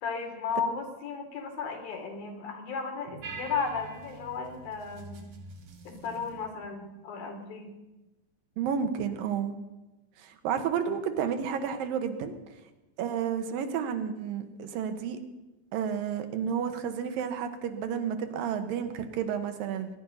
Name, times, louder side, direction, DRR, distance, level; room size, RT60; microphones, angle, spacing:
voice 1, 0.0-5.2 5.9-7.7, left 5 dB, 80° left, 4 dB, 4.1 m, -35 dB
sound 1, 3.2-6.5, right 4 dB, 60° right, 2.7 m, -45 dB
voice 2, 8.6-9.5 10.2-12.3 13.0-15.2 15.7-19.9, right 7 dB, 75° right, 8 dB, 2.9 m, -31 dB
22.0 x 11.0 x 5.6 m, 1.0 s
omnidirectional pair, 4.1 m